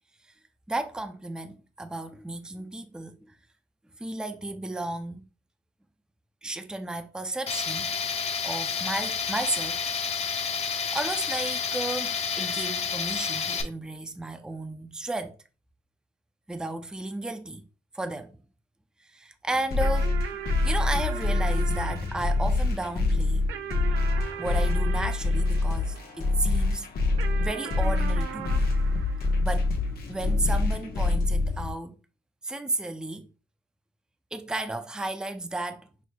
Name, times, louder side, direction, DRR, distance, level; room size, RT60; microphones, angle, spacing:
voice 1, 0.7-3.3 4.0-5.3 6.4-8.1 8.4-9.8 10.9-15.4 16.5-17.6 17.9-18.4 19.1-20.1 20.6-23.5 24.4-26.9 27.4-28.6 29.4-29.7 30.1-32.0 32.4-33.3 34.3-35.9, right 2 dB, 5° right, 0.4 m, -33 dB
Tools, 7.5-13.6, left 6 dB, 30° left, 0.7 m, -30 dB
sound 1, 19.7-31.7, left 2 dB, 50° left, 1.1 m, -25 dB
sound 2, 19.8-26.5 27.2-30.0, right 8 dB, 85° right, 0.5 m, -40 dB
6.1 x 2.7 x 2.2 m
cardioid pair, 90°, 20 cm